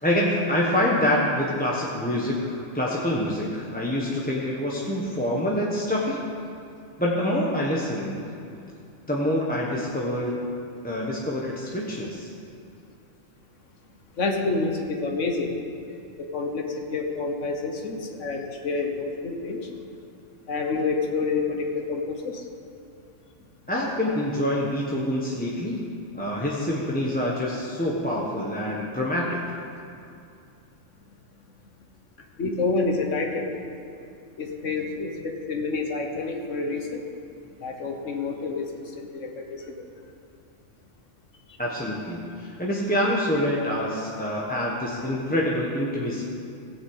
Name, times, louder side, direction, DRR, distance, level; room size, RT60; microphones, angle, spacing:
voice 1, 0.0-6.2 7.0-8.1 9.1-10.4 10.8-12.3 23.7-25.8 26.1-29.4 41.6-46.2, left 1 dB, 10° left, -5 dB, 1.2 m, -26 dB
voice 2, 14.2-15.5 16.2-19.6 20.5-22.4 32.4-33.5 34.4-37.0 37.6-38.7 39.0-39.7, left 3 dB, 80° left, 2 dB, 1.5 m, -28 dB
17.0 x 6.1 x 8.0 m, 2.5 s
omnidirectional pair, 1.3 m